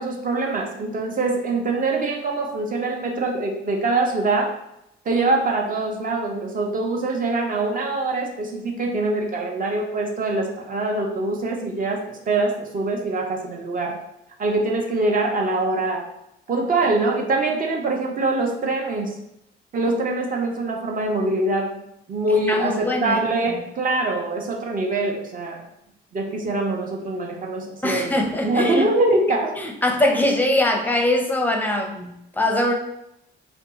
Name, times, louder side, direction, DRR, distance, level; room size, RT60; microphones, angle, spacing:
voice 1, 0.0-4.6 5.1-14.0 14.4-16.1 16.5-19.2 19.7-21.8 22.1-25.6 26.1-28.2 28.4-29.5, right 2 dB, 40° right, 1 dB, 0.7 m, -24 dB
voice 2, 22.5-23.2 23.5-23.6 27.8-28.8 29.6-32.7, left 1 dB, 10° left, 2 dB, 0.5 m, -22 dB
2.5 x 2.4 x 3.8 m, 0.81 s
cardioid pair, 95°, 20 cm